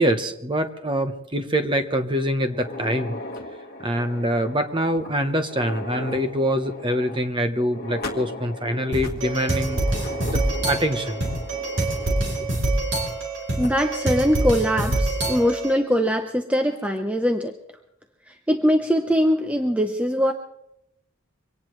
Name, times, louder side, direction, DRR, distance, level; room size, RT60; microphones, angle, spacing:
voice 1, 0.0-3.2 3.8-9.8 10.2-10.4 10.7-11.2, equal, 25° right, 8 dB, 1.0 m, -24 dB
sound 1, 2.5-13.2 13.6-13.7 14.5-14.6 15.1-15.2 16.5-16.8, left 1 dB, 45° left, 1.6 m, -37 dB
sound 2, 8.9-15.8, right 2 dB, 55° right, 4.1 m, -25 dB
voice 2, 13.6-17.5 18.3-20.3, equal, 5° right, 6 dB, 0.6 m, -22 dB
24.0 x 18.0 x 3.2 m, 0.83 s
head